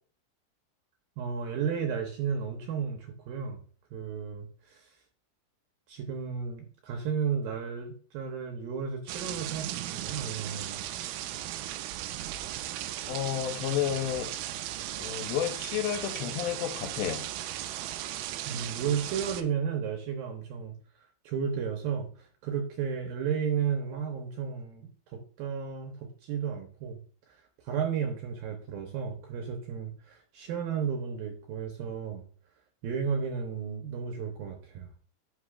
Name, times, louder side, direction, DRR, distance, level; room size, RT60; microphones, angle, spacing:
voice 1, 1.2-3.6 3.9-4.9 5.9-10.8 18.5-20.7 21.2-27.0 27.3-27.4 27.6-32.2 32.8-34.9, right 7 dB, 75° right, 2.3 m, -33 dB
sound 1, 9.1-19.4, right 13 dB, 90° right, 2.1 m, -37 dB
voice 2, 13.1-14.4 15.0-17.3, left 11 dB, 80° left, 2.8 m, -31 dB
9.9 x 6.3 x 2.4 m
omnidirectional pair, 4.9 m